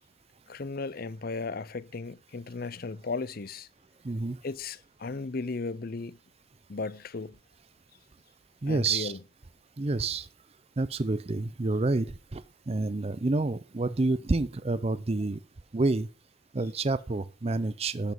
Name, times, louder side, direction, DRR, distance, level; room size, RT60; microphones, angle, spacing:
voice 1, 0.5-3.7 4.4-6.2 6.7-7.4 8.7-9.2, left 3 dB, 50° left, 0.6 m, -35 dB
voice 2, 4.0-4.4 8.6-9.1 9.8-10.3 10.8-15.4 15.7-16.1 16.5-18.1, right 3 dB, 30° right, 0.5 m, -28 dB
12.5 x 7.2 x 5.5 m
head